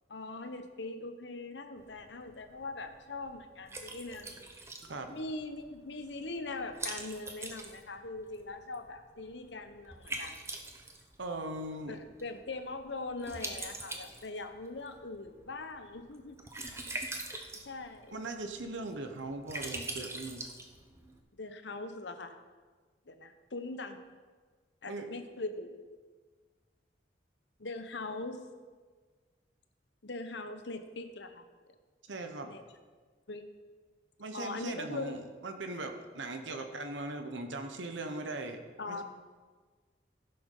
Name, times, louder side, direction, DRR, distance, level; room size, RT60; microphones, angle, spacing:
voice 1, 0.1-4.5 5.1-10.4 11.8-16.7 17.6-18.2 21.3-22.3 23.1-24.0 24.8-25.8 27.6-28.4 30.0-31.4 32.4-32.6 33.3-33.4 34.3-35.2 38.8-39.0, left 3 dB, 70° left, 8 dB, 1.0 m, -41 dB
Liquid, 1.8-21.2, right 2 dB, 15° right, 0.9 m, -45 dB
voice 2, 11.2-12.0 18.1-20.4 24.9-25.1 32.1-32.6 34.2-38.6 38.9-39.0, right 2 dB, 90° right, 6 dB, 1.0 m, -39 dB
15.5 x 6.9 x 5.5 m, 1.5 s
head